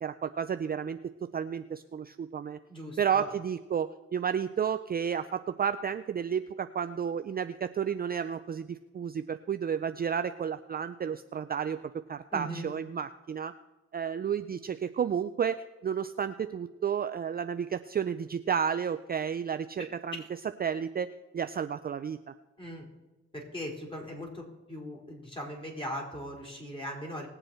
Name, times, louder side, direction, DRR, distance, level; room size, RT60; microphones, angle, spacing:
voice 1, 0.0-2.6 3.0-11.8 12.1-13.5 13.9-20.2 20.6-22.2, right 7 dB, 30° right, 10 dB, 0.5 m, -32 dB
voice 2, 2.7-3.3 12.3-12.7 20.2-20.3 22.6-22.9 23.3-27.3, equal, 15° left, -1 dB, 4.2 m, -39 dB
20.0 x 7.9 x 4.4 m, 1.1 s
cardioid pair, 90°, 30 cm